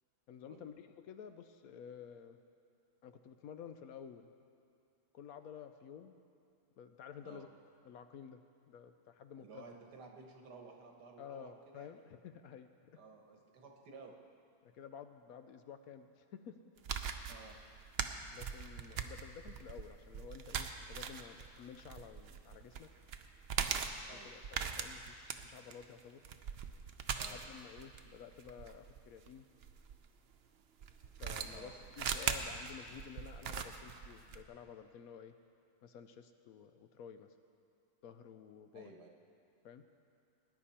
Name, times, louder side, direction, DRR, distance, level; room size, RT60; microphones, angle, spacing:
voice 1, 0.3-2.4 3.0-4.3 5.1-6.2 6.8-7.5 7.8-8.4 8.7-9.6 11.2-13.0 14.6-16.6 18.3-22.9 24.2-26.2 27.2-29.5 31.2-35.3 35.8-37.3 38.0-38.9 39.6-39.8, left 8 dB, 70° left, 9 dB, 0.9 m, -52 dB
voice 2, 9.4-12.0 13.0-14.1 17.3-17.6 24.1-24.3 27.1-27.4 31.5-31.7 38.7-39.1, right 4 dB, 80° right, 2 dB, 1.9 m, -54 dB
sound 1, 16.8-30.0 30.8-34.4, right 7 dB, 60° right, 0.6 m, -41 dB
19.5 x 10.5 x 4.3 m, 2.4 s
omnidirectional pair, 1.7 m